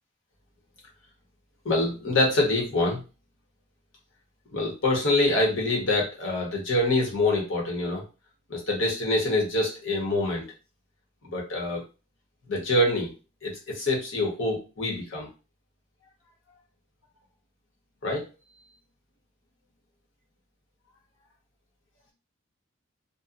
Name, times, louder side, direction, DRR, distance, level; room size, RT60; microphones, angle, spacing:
voice 1, 1.6-3.0 4.5-8.0 8.5-10.5 11.2-11.8 12.5-13.1 13.4-15.3 18.0-18.3, left 2 dB, 75° left, -3 dB, 1.1 m, -25 dB
2.7 x 2.2 x 2.4 m, 0.31 s
head